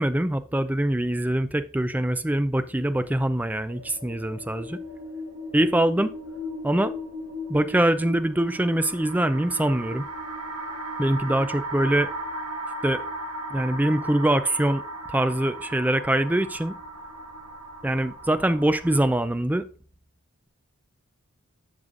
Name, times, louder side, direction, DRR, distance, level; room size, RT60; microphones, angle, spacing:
voice 1, 0.0-4.8 5.5-6.2 6.6-6.9 7.5-10.0 11.0-12.1 12.8-13.0 13.5-14.8 15.1-16.7 17.8-19.7, right 1 dB, 5° right, 11 dB, 0.3 m, -23 dB
sound 1, 3.7-19.1, equal, 80° right, 1.6 m, -36 dB
10.5 x 6.7 x 2.5 m, 0.38 s
head